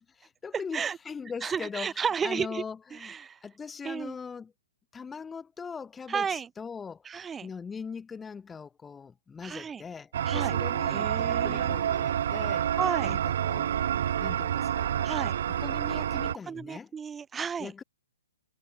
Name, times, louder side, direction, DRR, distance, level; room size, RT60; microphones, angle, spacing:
voice 1, 0.0-3.1 3.4-4.5 4.9-7.1 7.4-12.7 13.0-13.7 14.2-14.9 15.5-16.9 17.6-17.8, left 5 dB, 10° left, 5.6 m, -41 dB
voice 2, 1.4-2.6 2.9-3.4 3.8-4.1 6.1-6.5 7.0-7.5 9.4-9.8 10.2-10.5 10.9-11.7 12.8-13.2 15.0-15.3 16.5-17.7, right 6 dB, 10° right, 6.0 m, -33 dB
sound 1, 10.1-16.3, right 10 dB, 55° right, 4.9 m, -28 dB
figure-of-eight pair, 125°, 0 cm